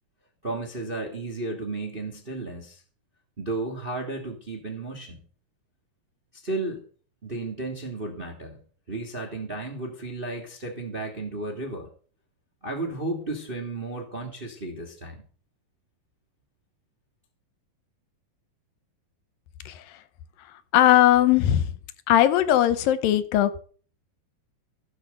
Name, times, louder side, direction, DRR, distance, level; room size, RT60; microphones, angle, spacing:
voice 1, 0.4-2.8 3.4-5.2 6.3-6.8 7.2-8.6 8.9-11.9 12.6-15.2, right 2 dB, 25° right, 4 dB, 1.2 m, -33 dB
voice 2, 19.7-20.0 20.7-21.7 22.1-23.6, left 12 dB, 75° left, 13 dB, 2.4 m, -19 dB
15.0 x 6.5 x 6.6 m, 0.43 s
omnidirectional pair, 4.2 m